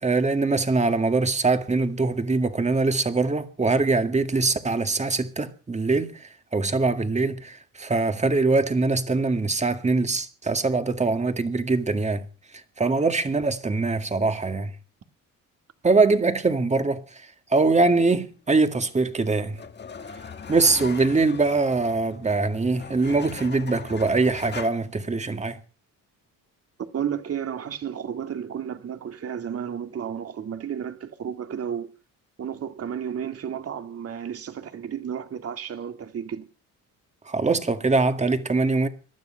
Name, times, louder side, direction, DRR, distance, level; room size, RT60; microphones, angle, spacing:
voice 1, 0.0-12.3 12.5-14.7 15.8-17.2 17.5-19.6 20.5-25.6 37.3-38.9, right 3 dB, 20° right, 2.0 m, -23 dB
sound 1, 18.8-24.7, left 6 dB, 30° left, 1.6 m, -40 dB
voice 2, 26.9-31.9 32.4-36.5, right 8 dB, 45° right, 2.3 m, -32 dB
20.0 x 12.5 x 5.8 m
cardioid pair, 125°, 34 cm